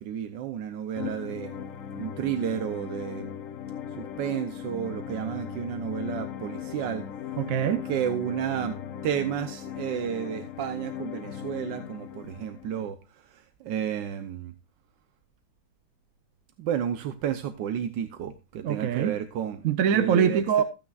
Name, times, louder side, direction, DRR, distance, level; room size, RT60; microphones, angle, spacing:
voice 1, 0.0-1.6 2.0-3.4 3.9-7.0 7.9-8.8 9.0-14.5 16.6-19.7 19.9-20.4, right 9 dB, 85° right, 1.5 m, -32 dB
sound 1, 0.9-12.9, left 9 dB, 60° left, 1.0 m, -38 dB
voice 2, 7.4-7.8 18.6-19.1 19.6-20.6, right 8 dB, 60° right, 1.0 m, -23 dB
15.5 x 8.9 x 2.4 m
omnidirectional pair, 1.9 m